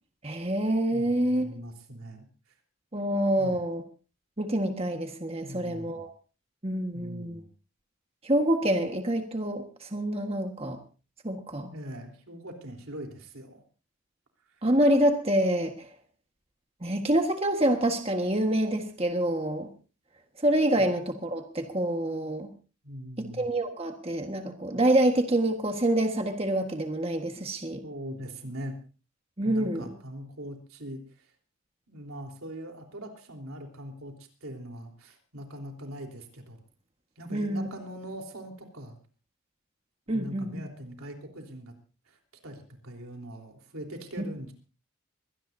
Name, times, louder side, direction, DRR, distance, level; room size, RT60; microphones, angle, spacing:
voice 1, 0.2-1.5 2.9-3.8 4.4-6.1 6.6-7.4 8.2-10.8 11.2-11.7 14.6-15.9 16.8-19.7 20.4-22.5 23.2-27.8 29.4-29.9 37.3-37.7 40.1-40.6 44.2-44.3, right 1 dB, 30° right, 4 dB, 1.5 m, -26 dB
voice 2, 0.9-2.3 3.4-3.6 5.4-6.0 6.9-7.5 11.7-13.6 20.8-20.9 22.8-23.5 27.8-28.8 29.4-31.3 31.9-36.6 37.2-39.0 40.1-41.7 42.1-44.5, equal, 85° right, 3 dB, 3.7 m, -42 dB
23.0 x 18.0 x 2.7 m, 0.36 s
head